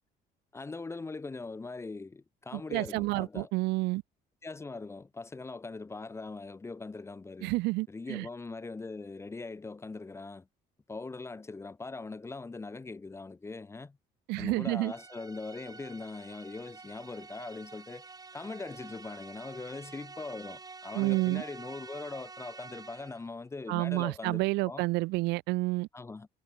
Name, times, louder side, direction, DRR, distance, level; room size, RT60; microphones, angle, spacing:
voice 1, 0.5-3.5 4.4-7.5 7.9-10.5 10.9-14.0 14.4-18.0 18.3-24.8 25.9-26.3, left 3 dB, 15° left, 0.6 m, -41 dB
voice 2, 2.5-4.0 7.4-8.3 14.3-14.9 20.9-21.4 23.7-25.9, right 22 dB, 90° right, 0.5 m, -29 dB
sound 1, 14.9-23.3, right 4 dB, 20° right, 2.0 m, -48 dB
cardioid pair, 110°, 17 cm